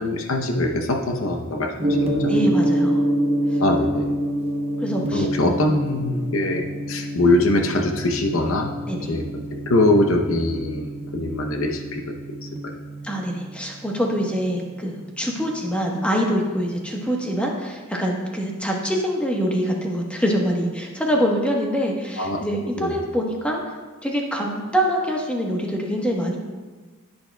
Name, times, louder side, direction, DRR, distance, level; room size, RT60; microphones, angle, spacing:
voice 1, 0.0-2.3 3.6-4.1 5.1-8.7 9.1-9.2 9.7-12.1 12.4-12.5 22.2-22.4 22.8-22.9, left 1 dB, 65° left, 4 dB, 0.8 m, -22 dB
Gong, 1.8-16.0, right 1 dB, 30° right, 0.9 m, -27 dB
voice 2, 2.3-3.0 3.5-3.6 4.8-5.6 8.9-9.1 13.0-23.6 24.0-26.4, equal, 5° left, -1 dB, 1.1 m, -25 dB
10.5 x 9.6 x 2.3 m, 1.3 s
head